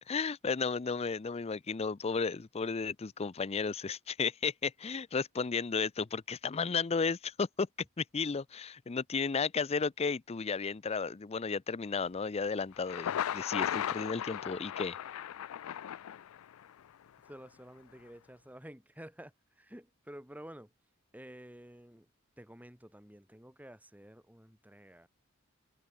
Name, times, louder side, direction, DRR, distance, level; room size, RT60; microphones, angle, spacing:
voice 1, 0.1-7.7 8.0-15.0, left 5 dB, 30° left, 0.5 m, -33 dB
Thunder, 12.7-16.7, left 10 dB, 85° left, 0.4 m, -36 dB
voice 2, 17.3-20.7 21.1-22.1 22.4-25.1, equal, 10° right, 4.5 m, -51 dB
head